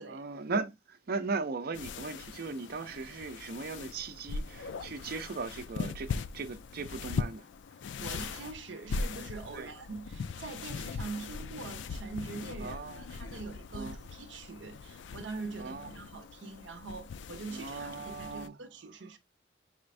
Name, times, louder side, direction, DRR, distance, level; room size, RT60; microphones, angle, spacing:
voice 1, 0.0-7.5 9.5-9.7 12.6-13.1 13.7-14.0 15.6-15.9 17.5-18.6, right 4 dB, 55° right, 0.5 m, -38 dB
sound 1, 1.7-18.5, left 4 dB, 80° left, 0.4 m, -40 dB
voice 2, 8.0-12.8 13.1-19.2, right 4 dB, 90° right, 0.7 m, -43 dB
5.0 x 2.5 x 3.2 m
head